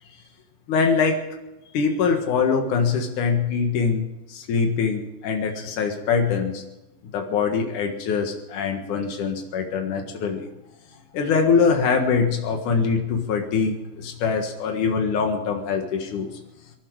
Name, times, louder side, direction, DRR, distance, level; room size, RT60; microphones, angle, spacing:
voice 1, 0.7-1.3 1.7-6.6 7.1-10.5 11.1-16.3, left 5 dB, 85° left, 4 dB, 3.2 m, -23 dB
25.5 x 11.5 x 4.8 m, 0.96 s
omnidirectional pair, 3.4 m